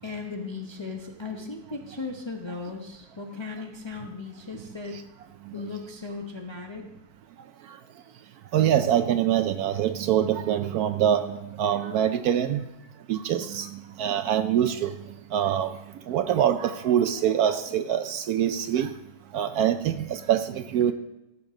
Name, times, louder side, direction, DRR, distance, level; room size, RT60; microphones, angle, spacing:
voice 1, 0.0-5.0 5.5-6.8, left 4 dB, 25° left, 1 dB, 0.6 m, -37 dB
voice 2, 8.5-12.6 13.1-14.9 15.3-15.8 16.1-18.9 19.3-20.9, right 10 dB, 70° right, 10 dB, 1.0 m, -24 dB
15.5 x 7.2 x 3.7 m, 0.92 s
omnidirectional pair, 1.8 m